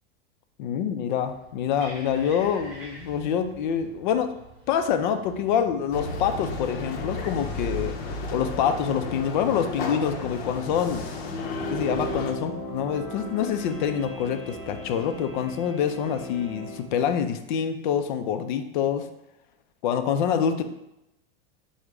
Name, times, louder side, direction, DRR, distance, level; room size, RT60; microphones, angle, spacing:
voice 1, 0.6-4.3 4.7-7.9 8.3-11.1 11.7-19.1 19.8-20.6, left 8 dB, 55° left, 8 dB, 0.4 m, -26 dB
sound 1, 1.3-17.3, right 2 dB, 5° right, 1.7 m, -49 dB
sound 2, 5.9-12.3, left 3 dB, 80° left, 0.7 m, -33 dB
sound 3, 11.1-16.8, right 1 dB, 20° left, 1.0 m, -37 dB
5.1 x 2.1 x 4.5 m, 0.88 s
supercardioid pair, 175°, 30 cm